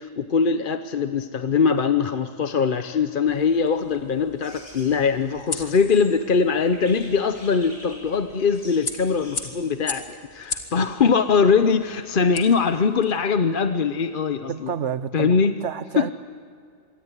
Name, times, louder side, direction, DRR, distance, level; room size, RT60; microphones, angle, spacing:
voice 1, 0.0-14.7 15.1-15.5 16.0-16.1, left 5 dB, 45° left, 0.9 m, -22 dB
sound 1, 3.3-13.2, left 4 dB, 85° left, 2.5 m, -38 dB
sound 2, 4.4-9.5, left 1 dB, 65° left, 8.6 m, -46 dB
voice 2, 14.5-16.1, right 7 dB, 65° right, 1.1 m, -29 dB
26.0 x 23.0 x 9.7 m
omnidirectional pair, 1.4 m